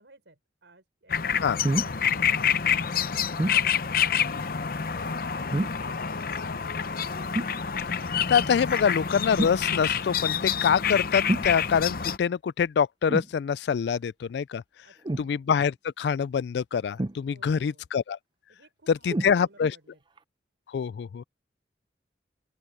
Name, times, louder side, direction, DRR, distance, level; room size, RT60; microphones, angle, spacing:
voice 1, 0.0-2.1 2.7-4.3 4.9-6.8 14.8-15.3 17.3-17.9 18.5-20.0, right 2 dB, 85° right, 4.6 m, -57 dB
sound 1, 1.1-12.2, left 8 dB, 55° left, 0.7 m, -27 dB
sound 2, 1.6-2.0 3.4-3.6 5.5-5.9 7.3-7.6 9.4-9.6 11.3-11.5 13.1-13.3 15.0-15.3 17.0-17.6 19.1-19.4 20.2-20.3, right 1 dB, 25° right, 0.5 m, -28 dB
voice 2, 8.3-14.6 15.2-18.2 18.9-19.7 20.7-21.2, left 7 dB, 70° left, 0.3 m, -25 dB
open air
head